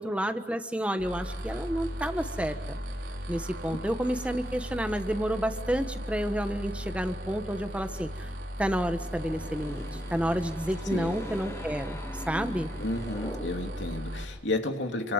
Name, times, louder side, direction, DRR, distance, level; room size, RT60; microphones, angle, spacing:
voice 1, 0.0-2.8 3.3-8.3 8.6-12.7, equal, 5° right, 7 dB, 1.3 m, -30 dB
sound 1, 1.0-14.2, equal, 85° right, 3.8 m, -37 dB
sound 2, 8.7-14.0, left 1 dB, 15° left, 1.3 m, -43 dB
voice 2, 12.8-15.1, left 2 dB, 75° left, 4 dB, 3.0 m, -31 dB
29.0 x 25.5 x 7.4 m, 1.2 s
head